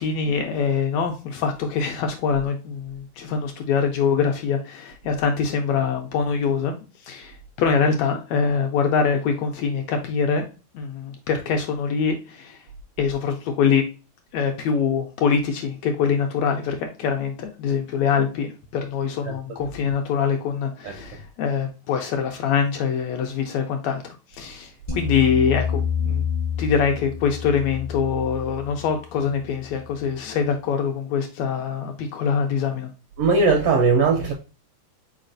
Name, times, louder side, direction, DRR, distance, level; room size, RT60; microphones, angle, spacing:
voice 1, 0.0-6.8 7.0-10.4 10.7-12.6 13.0-13.8 14.3-26.2 26.6-32.9, left 6 dB, 80° left, 1.6 m, -24 dB
sound 1, 24.9-30.1, left 7 dB, 40° left, 0.6 m, -29 dB
voice 2, 33.2-34.3, right 4 dB, 80° right, 1.4 m, -19 dB
4.6 x 4.1 x 2.5 m
omnidirectional pair, 3.5 m